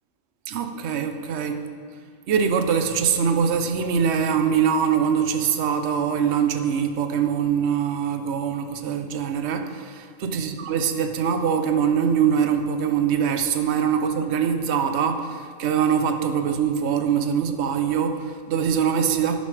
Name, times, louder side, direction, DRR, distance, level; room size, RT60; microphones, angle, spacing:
voice 1, 0.5-1.6 2.3-19.4, right 7 dB, 60° right, 6 dB, 0.9 m, -23 dB
12.0 x 10.5 x 3.4 m, 2.1 s
omnidirectional pair, 1.4 m